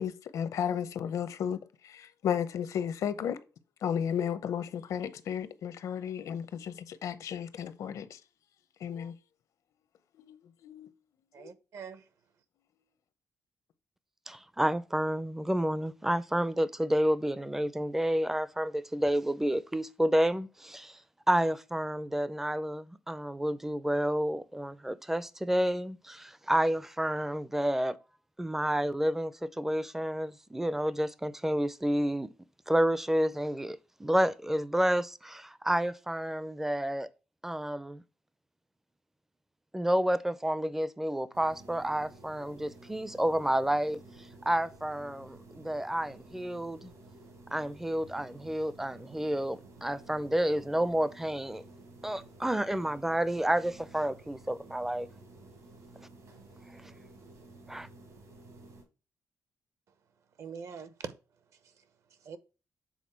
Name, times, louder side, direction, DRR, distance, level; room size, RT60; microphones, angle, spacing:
voice 1, 0.0-3.4 3.8-8.2 8.8-9.1 10.1-10.4 10.6-10.9 11.4-11.5, left 8 dB, 70° left, 0.7 m, -34 dB
voice 2, 11.3-12.1 60.4-61.1 61.6-61.8 62.2-62.4, right 6 dB, 60° right, 0.8 m, -43 dB
voice 3, 14.3-21.0 21.3-28.0 28.4-32.3 32.7-37.1 37.4-38.0 39.7-44.0 44.4-46.9 47.5-51.6 52.0-55.1 57.7-57.9, right 1 dB, 5° right, 0.4 m, -30 dB
sound 1, 41.3-58.8, right 2 dB, 80° right, 3.8 m, -53 dB
7.2 x 4.0 x 4.4 m
wide cardioid pair, 160°, 6 cm